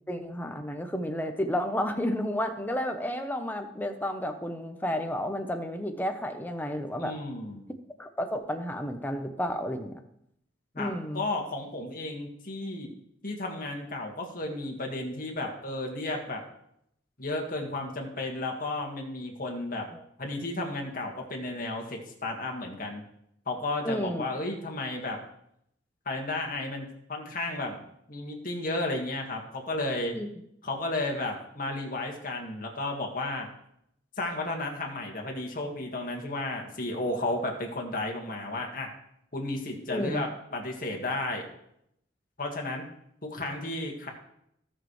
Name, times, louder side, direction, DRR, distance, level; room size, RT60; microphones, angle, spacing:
voice 1, 0.1-7.2 8.0-10.0 10.8-11.2 19.9-20.0 23.8-24.2 30.1-30.3 39.9-40.3, equal, 10° left, 6 dB, 0.8 m, -31 dB
voice 2, 7.0-7.7 10.8-12.9 13.2-16.4 17.2-19.9 20.2-23.0 23.5-25.2 26.1-27.8 28.1-30.1 30.6-33.5 34.2-38.9 39.3-41.5 42.4-42.8 43.2-44.1, left 2 dB, 50° left, 2 dB, 1.8 m, -33 dB
16.5 x 6.3 x 3.2 m, 0.76 s
head